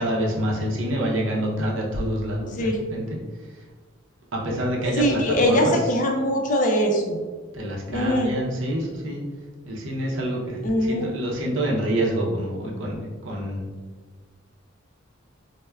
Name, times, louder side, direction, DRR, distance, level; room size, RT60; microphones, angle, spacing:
voice 1, 0.0-3.2 4.3-5.9 7.5-9.2 9.7-13.6, right 1 dB, 65° right, -2 dB, 0.6 m, -27 dB
voice 2, 5.0-7.2 7.9-8.3 10.6-11.1, equal, 40° left, 2 dB, 0.4 m, -22 dB
4.5 x 2.1 x 2.2 m, 1.4 s
head